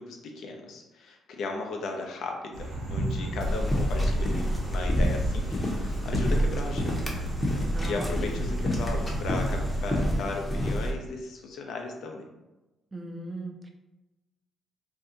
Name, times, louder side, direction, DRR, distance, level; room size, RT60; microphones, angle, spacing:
voice 1, 0.0-7.0 7.8-12.2, left 3 dB, 75° left, 2 dB, 0.5 m, -36 dB
sound 1, 2.5-10.0, right 1 dB, 80° right, 0.7 m, -35 dB
Explosion, 3.3-4.5, left 1 dB, 55° right, 1.2 m, -39 dB
sound 2, 3.5-10.9, equal, 15° left, 0.7 m, -28 dB
voice 2, 7.7-8.4 12.9-13.7, right 1 dB, 25° right, 3 dB, 0.5 m, -38 dB
2.6 x 2.2 x 3.8 m, 1.0 s
cardioid pair, 90°, 0 cm